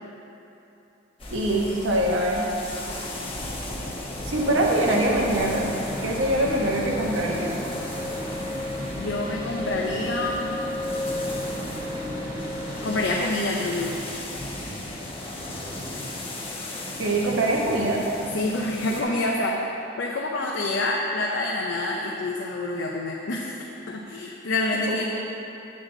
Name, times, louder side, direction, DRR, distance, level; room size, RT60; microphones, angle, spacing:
sound 1, 1.2-19.0, left 1 dB, 30° left, 1.0 m, -36 dB
voice 1, 1.3-2.5 4.2-5.7 6.0-7.5 17.0-18.0 24.9-25.1, right 1 dB, 80° right, -2 dB, 1.2 m, -23 dB
sound 2, 4.3-13.2, left 1 dB, 20° right, 1.1 m, -33 dB
voice 2, 9.0-10.6 12.8-14.0 18.3-19.6 20.0-23.5 23.9-25.1, left 2 dB, 65° left, -2 dB, 0.6 m, -27 dB
8.2 x 7.6 x 3.9 m, 2.9 s
head